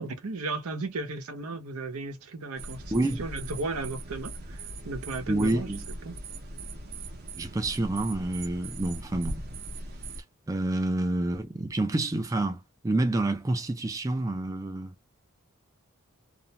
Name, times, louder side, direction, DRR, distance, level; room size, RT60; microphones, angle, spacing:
voice 1, 0.0-5.7 6.0-6.1, right 3 dB, 85° right, 0.8 m, -35 dB
sound 1, 2.6-10.2, right 2 dB, 45° right, 0.7 m, -40 dB
voice 2, 2.9-3.2 5.3-5.8 7.4-9.4 10.5-14.9, right 2 dB, 15° right, 0.3 m, -28 dB
2.5 x 2.1 x 2.7 m
head